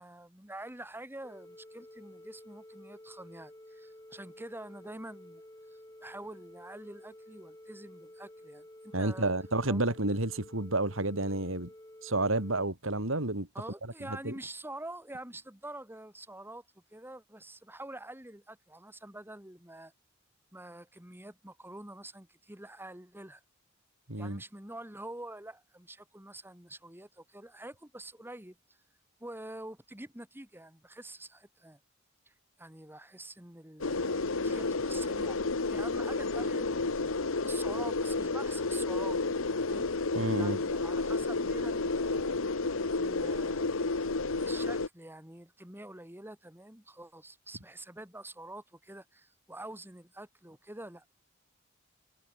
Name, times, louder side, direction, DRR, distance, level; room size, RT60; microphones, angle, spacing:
voice 1, 0.0-5.4 5.7-9.3 9.7-9.9 13.5-16.6 16.9-19.9 20.5-23.4 24.2-28.6 29.2-31.8 32.3-32.4 32.6-35.4 35.7-37.1 37.4-39.2 39.7-39.9 40.4-42.3 43.0-43.7 44.4-51.1, right 1 dB, 10° right, 3.7 m, -46 dB
sound 1, 1.2-12.7, left 1 dB, 15° left, 5.0 m, -52 dB
voice 2, 8.9-11.7 12.0-13.5 14.1-14.3 24.1-24.4 40.1-40.6, right 2 dB, 75° right, 4.3 m, -30 dB
sound 2, 33.8-44.9, left 3 dB, 85° left, 1.3 m, -31 dB
head